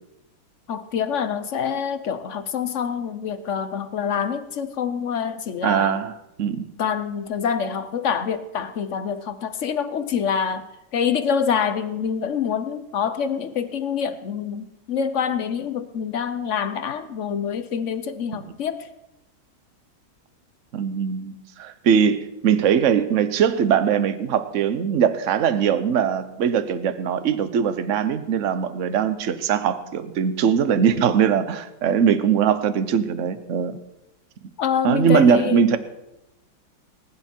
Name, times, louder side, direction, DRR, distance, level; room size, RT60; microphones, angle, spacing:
voice 1, 0.7-6.0 6.8-10.7 10.9-18.9 34.6-35.6, left 7 dB, 55° left, 11 dB, 0.8 m, -26 dB
voice 2, 5.6-6.1 6.4-6.7 20.7-33.8 34.8-35.8, right 7 dB, 50° right, 12 dB, 1.0 m, -21 dB
19.5 x 10.5 x 4.5 m, 0.91 s
omnidirectional pair, 2.0 m